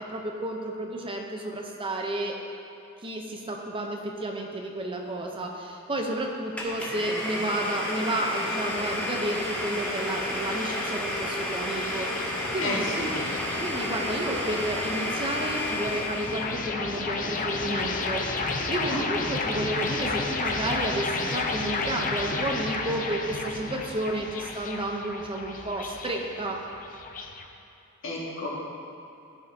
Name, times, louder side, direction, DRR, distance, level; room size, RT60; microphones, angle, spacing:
voice 1, 0.0-2.3 3.0-12.9 13.6-26.6, right 1 dB, 25° right, 1 dB, 0.6 m, -31 dB
Domestic sounds home sounds, 6.6-16.5, left 1 dB, 5° left, 1.2 m, -31 dB
sound 1, 8.7-27.5, left 3 dB, 40° left, 0.6 m, -33 dB
voice 2, 12.6-13.1 18.9-19.0 28.0-28.5, left 2 dB, 65° left, -5 dB, 1.8 m, -31 dB
15.0 x 5.5 x 2.7 m, 2.8 s
head